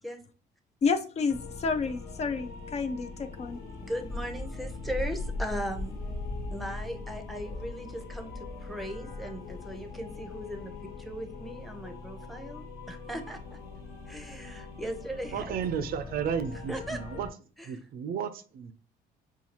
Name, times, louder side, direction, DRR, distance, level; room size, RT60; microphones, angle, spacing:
voice 1, 0.8-3.6, left 5 dB, 40° left, 10 dB, 0.5 m, -30 dB
sound 1, 1.3-17.3, left 4 dB, 65° left, 1.3 m, -43 dB
Wind, 3.8-9.7, left 2 dB, 90° left, 0.9 m, -38 dB
voice 2, 3.8-6.0 6.5-13.6 14.1-15.5 16.7-17.0 17.6-17.7, equal, ahead, 5 dB, 0.7 m, -38 dB
voice 3, 15.3-17.3 17.6-18.7, right 7 dB, 60° right, 11 dB, 0.5 m, -33 dB
5.6 x 2.4 x 2.9 m, 0.39 s
cardioid pair, 110°, 17 cm